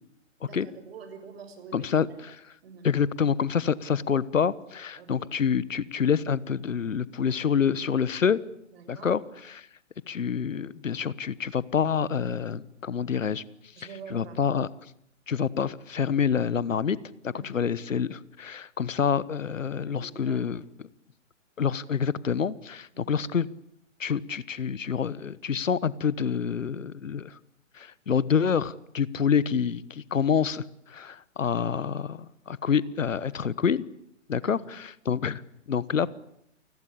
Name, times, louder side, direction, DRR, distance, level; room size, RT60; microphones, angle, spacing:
voice 1, 0.4-2.4 2.6-2.9 4.9-5.3 8.7-9.2 13.8-14.4 17.3-17.6 19.8-20.5 22.9-23.3 34.4-34.7, right 6 dB, 50° right, 9 dB, 6.4 m, -46 dB
voice 2, 1.7-2.3 2.8-8.4 8.9-9.2 9.5-9.7 10.1-13.4 13.8-14.7 15.3-17.0 17.3-20.6 21.6-23.5 24.0-27.4 27.7-33.8 34.3-35.4 35.7-36.1, left 7 dB, 75° left, 20 dB, 1.3 m, -27 dB
29.0 x 21.0 x 8.6 m, 0.73 s
figure-of-eight pair, 130°, 39 cm